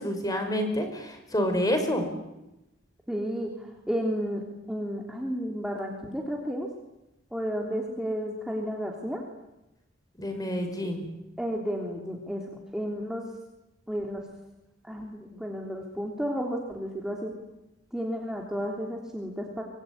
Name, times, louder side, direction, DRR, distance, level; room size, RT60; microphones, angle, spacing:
voice 1, 0.0-2.1 10.2-11.1, equal, 20° left, 6 dB, 5.6 m, -28 dB
voice 2, 3.1-4.4 4.7-6.7 7.3-9.2 11.4-12.4 12.7-13.2 13.9-14.2 14.8-17.3 17.9-19.6, equal, 5° right, 0 dB, 3.4 m, -32 dB
25.5 x 23.0 x 9.9 m, 0.93 s
head